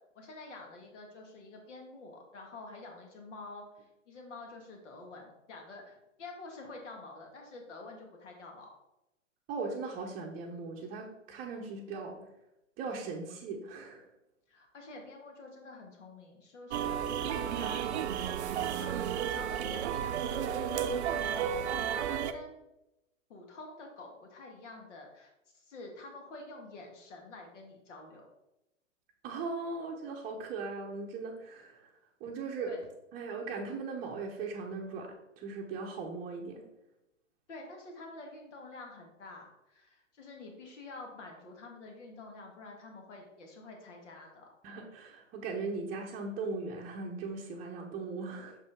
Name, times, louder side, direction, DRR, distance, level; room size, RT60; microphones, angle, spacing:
voice 1, 0.1-8.7 14.5-22.6 23.3-28.3 32.7-32.9 37.5-44.5, left 2 dB, 65° left, 2 dB, 2.0 m, -48 dB
voice 2, 9.5-12.3 12.8-14.1 29.2-31.9 32.2-32.8 33.1-36.6 44.6-48.6, right 4 dB, 25° right, -3 dB, 0.8 m, -39 dB
sound 1, 16.7-22.3, right 9 dB, 60° right, 0.6 m, -32 dB
6.5 x 5.1 x 3.6 m, 0.92 s
hypercardioid pair, 125°, 38 cm